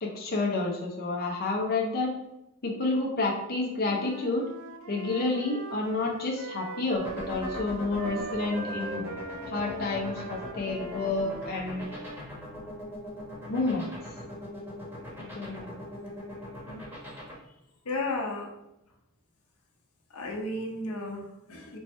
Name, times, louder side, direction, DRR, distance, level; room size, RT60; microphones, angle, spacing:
voice 1, 0.0-2.1 2.6-4.5 4.9-9.1 9.5-11.9 13.5-13.9 15.2-15.7 16.7-16.8, left 3 dB, 45° left, -1 dB, 0.6 m, -30 dB
Wind instrument woodwind instrument, 3.8-7.7 7.9-12.3, right 2 dB, 60° right, 0.4 m, -41 dB
sound 1, 6.9-17.3, left 1 dB, 10° right, 1.2 m, -40 dB
voice 2, 17.8-18.5 20.1-21.8, left 2 dB, 80° left, 1 dB, 0.8 m, -33 dB
4.4 x 2.9 x 3.2 m, 0.89 s
head